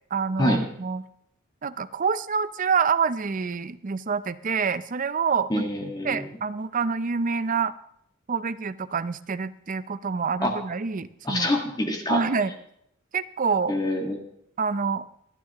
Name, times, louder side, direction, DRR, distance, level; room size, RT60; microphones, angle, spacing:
voice 1, 0.1-1.0 1.6-5.6 6.0-7.7 8.3-11.5 12.1-12.5 13.1-13.8 14.6-15.1, right 5 dB, 40° right, 14 dB, 0.5 m, -27 dB
voice 2, 5.5-6.2 10.4-10.5 11.2-12.2 13.7-14.2, left 1 dB, 20° left, 3 dB, 1.6 m, -25 dB
26.0 x 9.7 x 3.0 m, 0.72 s
head